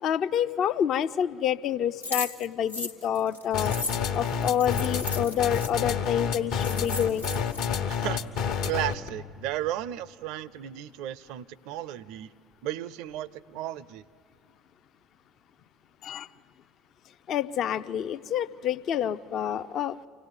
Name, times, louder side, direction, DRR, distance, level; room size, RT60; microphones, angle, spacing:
voice 1, 0.0-3.8 4.1-7.3 16.0-16.3 17.3-20.0, left 9 dB, 50° left, 13 dB, 0.5 m, -28 dB
sound 1, 2.0-5.7 6.2-6.3 6.5-7.6, left 3 dB, 85° left, 0.8 m, -36 dB
sound 2, 3.5-9.1, left 6 dB, 65° left, 1.1 m, -29 dB
voice 2, 7.9-8.3 8.6-12.3 12.6-14.0, right 13 dB, 60° right, 21 dB, 0.5 m, -34 dB
25.5 x 17.5 x 8.1 m, 2.4 s
figure-of-eight pair, 60°, 0 cm